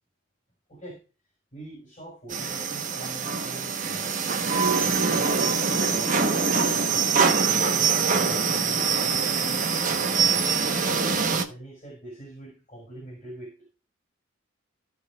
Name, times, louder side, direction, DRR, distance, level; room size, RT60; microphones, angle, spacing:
voice 1, 0.7-1.0 1.5-4.2 4.8-7.9 8.3-9.8 10.3-11.0 11.5-13.7, right 1 dB, 30° left, -3 dB, 5.5 m, -44 dB
sound 1, 2.3-11.4, right 5 dB, 40° right, 1.1 m, -24 dB
16.0 x 6.3 x 2.4 m, 0.33 s
head